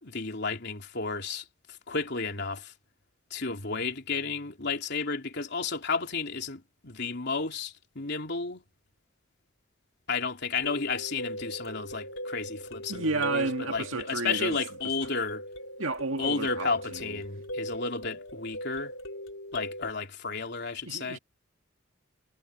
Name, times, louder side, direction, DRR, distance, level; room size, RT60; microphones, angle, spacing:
voice 1, 0.0-2.7 3.3-8.6 10.1-15.4 16.2-18.9 19.5-21.2, left 4 dB, 60° left, 3.4 m, -32 dB
sound 1, 10.6-19.9, equal, 85° left, 3.5 m, -40 dB
voice 2, 12.9-14.6 15.8-17.2 20.9-21.2, right 3 dB, 85° right, 2.1 m, -31 dB
head